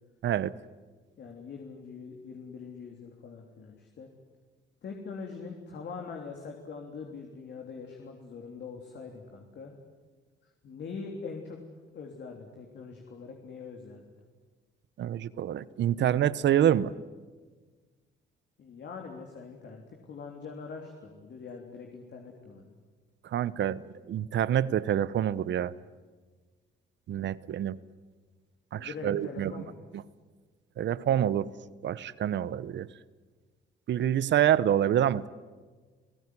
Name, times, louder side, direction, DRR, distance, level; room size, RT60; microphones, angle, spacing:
voice 1, 0.2-0.6 15.0-16.9 23.3-23.8 24.1-25.7 27.1-27.8 28.7-29.5 30.8-31.5 31.8-32.9 33.9-35.3, right 10 dB, 65° right, 18 dB, 0.9 m, -26 dB
voice 2, 1.2-4.1 4.8-9.7 10.6-11.6 11.9-14.1 18.6-22.8 28.8-29.9, left 5 dB, 60° left, 2 dB, 3.4 m, -43 dB
30.0 x 17.5 x 9.8 m, 1.4 s
cardioid pair, 90°, 20 cm